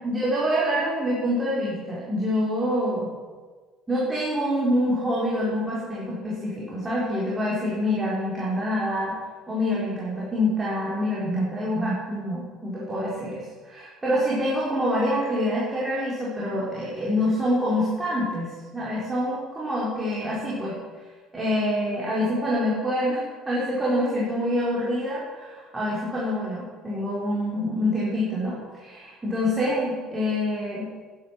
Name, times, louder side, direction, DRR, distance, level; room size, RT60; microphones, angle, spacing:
voice 1, 0.0-3.1 3.9-9.2 9.5-20.7 21.3-30.9, equal, 15° right, -7 dB, 4.7 m, -26 dB
11.0 x 10.5 x 7.6 m, 1.4 s
figure-of-eight pair, 60°, 0 cm